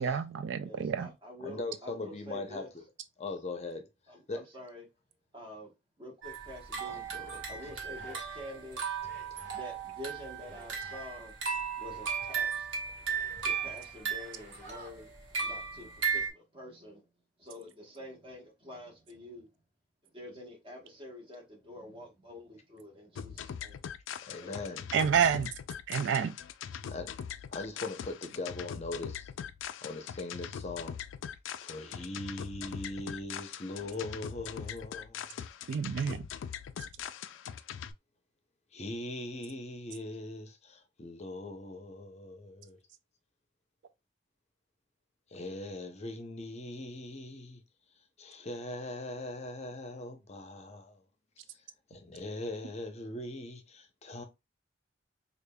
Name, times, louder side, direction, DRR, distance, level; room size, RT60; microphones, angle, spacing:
voice 1, 0.0-1.1 24.9-25.5 25.9-26.3 35.7-36.3, right 7 dB, 70° right, 0.3 m, -28 dB
voice 2, 0.6-2.7 4.1-4.9 5.3-7.1 7.5-9.0 9.5-11.4 11.7-12.9 13.4-17.1 17.4-19.6 20.0-23.8 24.1-24.8, left 1 dB, 25° right, 1.2 m, -47 dB
voice 3, 1.4-2.6 3.2-3.9 4.3-4.4 6.9-7.4 9.3-9.4 24.3-24.8 26.9-27.1 27.5-29.3 29.8-31.0 31.6-35.4 38.7-42.8 45.3-47.6 48.2-51.0 51.9-54.2, left 2 dB, 35° left, 0.6 m, -40 dB
sound 1, 6.2-16.3, right 6 dB, 90° right, 1.1 m, -36 dB
sound 2, 7.0-8.6 8.9-14.9, right 2 dB, 50° right, 1.9 m, -52 dB
sound 3, 23.1-37.9, left 8 dB, 85° left, 0.3 m, -42 dB
4.9 x 2.4 x 2.2 m
head